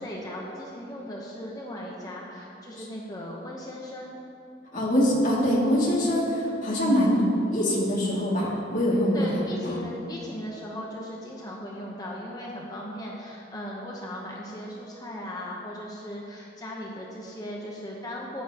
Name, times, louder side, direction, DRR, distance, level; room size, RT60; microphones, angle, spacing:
voice 1, 0.0-4.2 9.1-18.4, left 1 dB, 20° left, -3 dB, 0.9 m, -37 dB
voice 2, 4.7-9.8, equal, 45° left, -6 dB, 2.4 m, -24 dB
13.5 x 9.8 x 2.9 m, 2.8 s
head